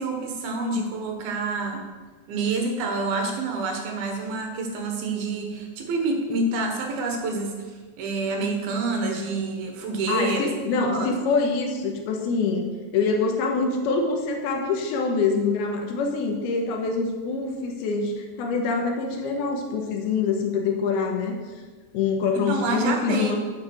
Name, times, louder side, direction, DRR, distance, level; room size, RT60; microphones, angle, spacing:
voice 1, 0.0-1.8 2.3-11.1 22.3-23.4, right 3 dB, 75° right, 3 dB, 3.2 m, -28 dB
voice 2, 10.1-21.6 21.9-23.4, left 4 dB, 85° left, 3 dB, 3.1 m, -25 dB
8.9 x 8.0 x 6.3 m, 1.4 s
omnidirectional pair, 4.4 m